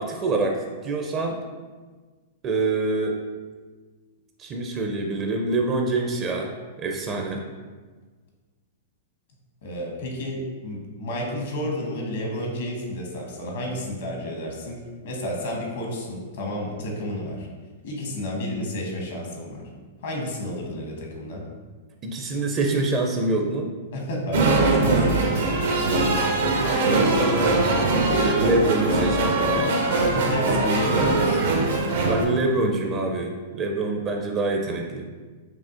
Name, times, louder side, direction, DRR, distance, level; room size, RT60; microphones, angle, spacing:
voice 1, 0.0-1.4 2.4-3.2 4.4-6.5 6.8-7.4 22.0-23.7 26.6-27.6 27.9-29.8 32.1-35.1, right 2 dB, 30° right, 2 dB, 0.5 m, -25 dB
voice 2, 9.6-17.5 17.8-19.7 20.0-21.4 23.9-25.9 30.1-31.6, left 1 dB, 70° left, -1 dB, 1.0 m, -31 dB
sound 1, 24.3-32.2, right 2 dB, 70° right, 0.7 m, -22 dB
5.6 x 2.5 x 2.5 m, 1.4 s
hypercardioid pair, 105°, 0 cm